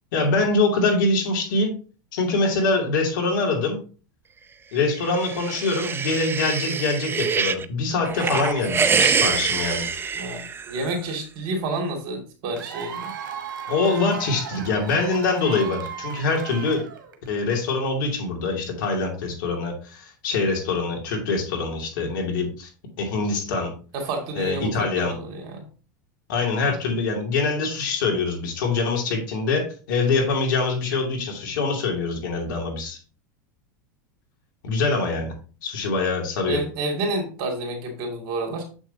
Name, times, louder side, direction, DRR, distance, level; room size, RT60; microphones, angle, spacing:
voice 1, 0.1-1.7 2.1-3.8 4.7-9.9 13.7-16.9 17.3-22.7 23.0-23.7 24.3-25.1 26.3-33.0 34.6-35.3 35.6-36.6, left 3 dB, 75° left, 1 dB, 2.7 m, -24 dB
sound 1, 5.0-7.6 8.0-10.9, right 6 dB, 20° right, 0.5 m, -25 dB
voice 2, 10.2-13.1 23.9-25.6 36.5-38.6, right 2 dB, 55° right, 1 dB, 2.4 m, -29 dB
Cheering / Applause / Crowd, 12.6-17.3, right 7 dB, 80° right, 1.2 m, -36 dB
7.3 x 6.2 x 2.8 m, 0.37 s
hypercardioid pair, 100°, 11 cm